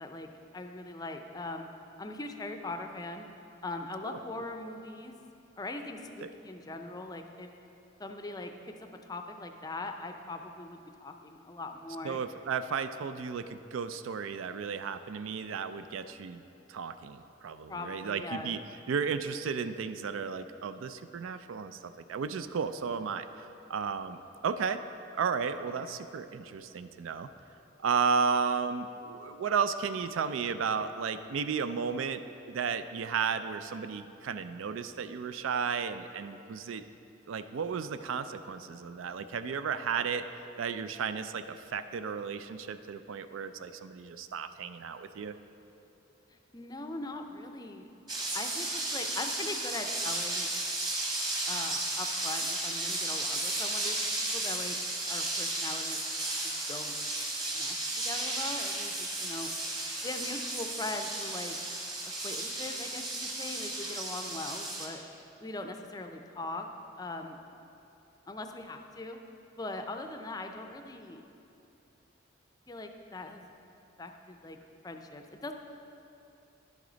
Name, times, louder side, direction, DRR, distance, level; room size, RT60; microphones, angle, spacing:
voice 1, 0.0-1.7 2.0-3.3 3.6-5.2 5.6-7.5 8.0-12.2 17.7-18.6 46.5-47.9 48.3-50.5 51.5-54.8 55.1-56.0 56.4-57.0 57.5-59.5 60.0-61.6 62.2-65.0 65.4-66.7 67.0-67.4 68.3-69.2 69.6-71.2 72.7-73.5 74.0-74.6 74.8-75.5, left 2 dB, 20° left, 5 dB, 0.5 m, -41 dB
voice 2, 12.0-16.4 16.7-18.6 18.9-24.2 24.4-24.8 25.2-27.3 27.8-32.2 32.5-36.8 37.3-40.2 40.6-45.3, right 6 dB, 80° right, 11 dB, 0.4 m, -33 dB
sound 1, 48.1-64.9, right 2 dB, 20° right, 1.4 m, -34 dB
10.5 x 8.1 x 3.9 m, 2.8 s
head